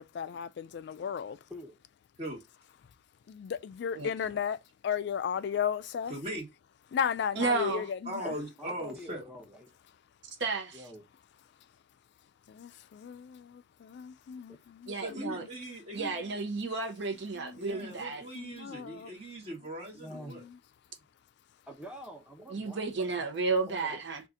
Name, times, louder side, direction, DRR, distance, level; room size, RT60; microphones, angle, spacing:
voice 1, 0.0-1.4 3.3-4.6 4.8-6.1 6.9-8.3 12.5-15.4 17.3-17.9 18.3-19.1, left 7 dB, 60° left, 0.3 m, -35 dB
voice 2, 6.1-6.5 8.0-9.2 15.0-16.4 17.6-20.4, right 1 dB, 30° right, 1.2 m, -40 dB
voice 3, 7.4-7.8 10.4-10.6 14.9-15.4 15.9-18.2 22.5-24.2, right 3 dB, 60° right, 0.8 m, -32 dB
voice 4, 8.2-9.7 10.7-11.0 14.5-14.6 19.9-20.4 21.7-23.1 23.7-24.0, equal, 5° right, 0.7 m, -46 dB
2.7 x 2.4 x 3.5 m
head